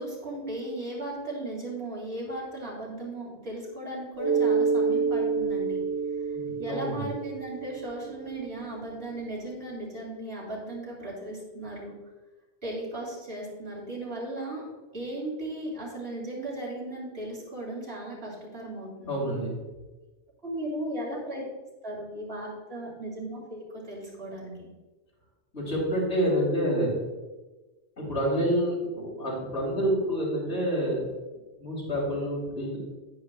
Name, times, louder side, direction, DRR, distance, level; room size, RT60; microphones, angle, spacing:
voice 1, 0.0-5.8 6.6-11.9 12.6-14.6 14.9-19.2 20.4-21.4 21.8-24.7, right 1 dB, 65° right, -4 dB, 3.4 m, -36 dB
Mallet percussion, 4.2-8.6, right 5 dB, 45° right, 2.0 m, -28 dB
voice 2, 6.3-7.0 19.0-19.5 25.5-26.9 28.0-31.0 31.6-32.8, equal, 75° left, -4 dB, 3.5 m, -28 dB
10.5 x 9.8 x 2.3 m, 1.2 s
omnidirectional pair, 1.2 m